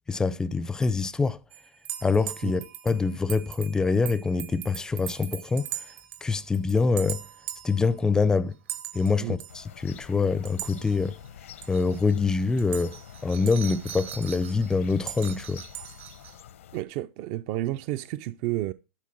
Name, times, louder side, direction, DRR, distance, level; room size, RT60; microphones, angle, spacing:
voice 1, 0.1-1.4 2.0-5.7 6.2-7.2 7.6-8.5 8.9-11.2 11.7-13.0 13.2-15.6, left 4 dB, 10° left, 0.5 m, -25 dB
sound 1, 1.5-6.2 6.5-7.9 8.7-9.1 9.4-9.6 10.5-11.3 11.6-12.1 12.4-16.4, right 12 dB, 70° right, 1.9 m, -40 dB
sound 2, 9.5-16.8, left 10 dB, 90° left, 1.0 m, -47 dB
voice 2, 16.7-18.7, right 15 dB, 45° right, 0.5 m, -31 dB
12.0 x 4.5 x 7.6 m
supercardioid pair, 140°, 7 cm